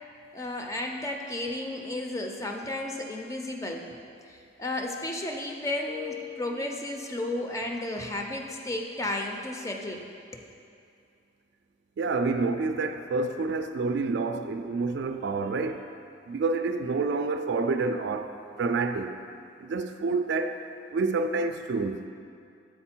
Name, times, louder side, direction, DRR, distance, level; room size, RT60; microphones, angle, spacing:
voice 1, 0.3-3.9 4.3-10.0 10.3-10.5, left 1 dB, 15° left, 2 dB, 0.5 m, -33 dB
Keyboard (musical), 5.9-7.9, left 16 dB, 80° left, 0.5 m, -43 dB
voice 2, 12.0-15.9 16.3-19.2 19.6-20.6 20.9-22.0, right 3 dB, 65° right, 7 dB, 0.3 m, -28 dB
7.7 x 4.3 x 4.4 m, 2.4 s
head